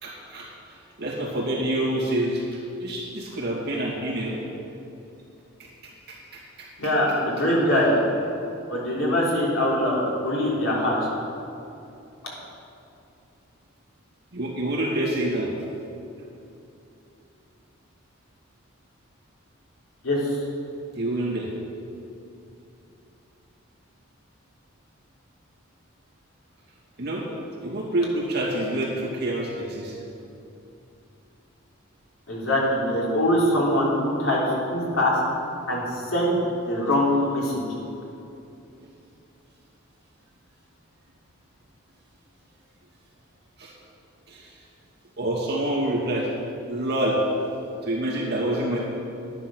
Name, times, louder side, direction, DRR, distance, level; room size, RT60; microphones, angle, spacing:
voice 1, 0.0-2.5 2.8-4.4 5.6-6.9 14.3-15.5 20.9-21.5 27.0-27.3 27.6-30.0 38.8-38.9 43.6-43.7 44.3-44.6 45.2-46.3 46.7-47.2 47.8-48.8, right 1 dB, 55° right, -4 dB, 2.4 m, -27 dB
voice 2, 6.8-7.9 8.7-10.9 20.0-20.2 32.3-34.4 34.7-35.1 35.7-35.8 36.1-36.3 36.7-37.6, left 1 dB, 80° left, -5 dB, 3.4 m, -22 dB
10.5 x 10.5 x 6.2 m, 2.7 s
head